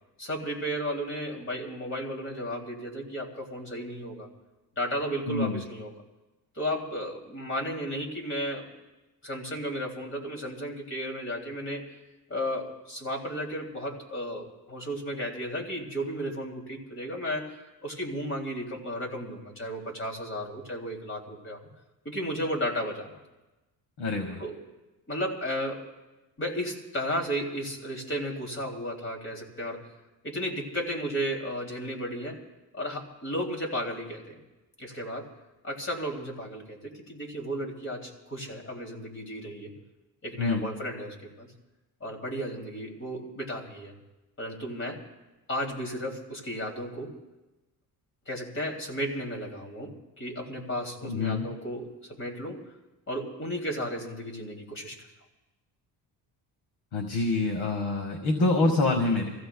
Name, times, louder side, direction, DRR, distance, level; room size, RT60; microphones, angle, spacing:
voice 1, 0.2-4.3 4.8-5.9 6.5-8.7 9.2-11.9 12.3-21.7 22.0-23.2 24.4-24.6 25.1-25.9 26.4-29.9 30.2-32.4 32.7-34.4 34.8-35.3 35.6-39.7 40.2-41.5 42.0-43.9 44.4-45.0 45.5-47.2 48.3-52.6 53.1-55.1, equal, 30° left, 2 dB, 2.8 m, -34 dB
voice 2, 5.3-5.6 24.0-24.4 40.4-40.7 51.0-51.5 56.9-59.3, left 2 dB, 70° left, 3 dB, 1.7 m, -26 dB
28.0 x 15.5 x 2.3 m, 1.1 s
cardioid pair, 110°, 40 cm